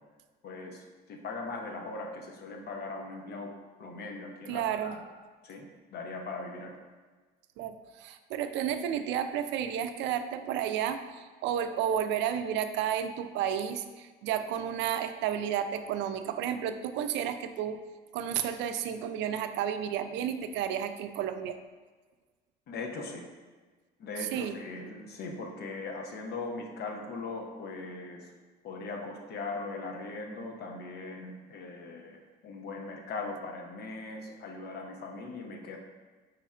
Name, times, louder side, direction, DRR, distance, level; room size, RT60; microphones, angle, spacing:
voice 1, 0.4-3.5 3.8-5.0 5.4-5.6 5.9-6.7 22.7-23.2 24.0-28.3 28.6-32.2 32.4-35.8, left 3 dB, 60° left, 2 dB, 0.8 m, -39 dB
voice 2, 4.5-5.0 7.6-17.8 18.1-21.6 24.2-24.6, right 9 dB, 75° right, 9 dB, 0.4 m, -32 dB
5.0 x 2.4 x 4.2 m, 1.4 s
cardioid pair, 105°, 19 cm